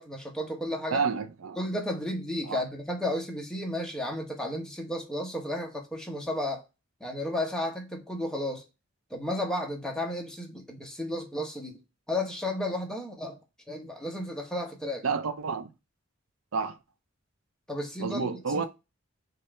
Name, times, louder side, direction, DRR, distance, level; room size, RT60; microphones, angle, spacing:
voice 1, 0.0-1.0 1.6-6.6 7.0-8.6 9.1-11.8 12.1-13.4 13.7-15.0 17.7-18.3, left 1 dB, 5° left, 0.9 m, -33 dB
voice 2, 0.9-1.6 2.5-2.6 15.0-15.7 16.5-16.8 18.0-18.7, right 5 dB, 80° right, 0.5 m, -29 dB
5.5 x 2.6 x 3.2 m
head